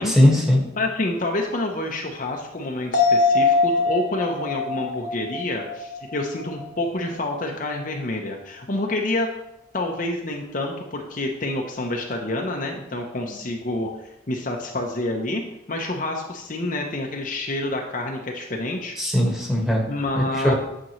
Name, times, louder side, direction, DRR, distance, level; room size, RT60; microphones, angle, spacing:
voice 1, 0.0-0.6 19.0-19.8 20.1-20.5, left 1 dB, ahead, -3 dB, 1.4 m, -19 dB
voice 2, 0.8-9.3 9.7-15.4 15.7-19.1 19.9-20.5, left 2 dB, 40° left, 1 dB, 0.7 m, -28 dB
sound 1, 2.9-6.6 7.0-7.1, left 3 dB, 65° left, 1.2 m, -23 dB
8.8 x 6.1 x 3.1 m, 0.87 s
head